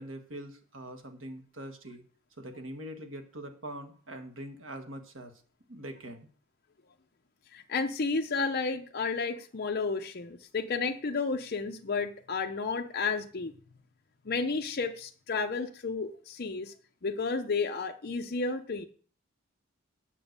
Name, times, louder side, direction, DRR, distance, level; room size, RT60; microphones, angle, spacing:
voice 1, 0.0-2.0 2.4-5.3 5.7-6.3, right 1 dB, 70° right, 5 dB, 1.7 m, -43 dB
voice 2, 7.5-13.5 14.2-16.7 17.0-18.9, left 4 dB, 50° left, 3 dB, 0.7 m, -32 dB
9.1 x 6.1 x 6.6 m, 0.44 s
head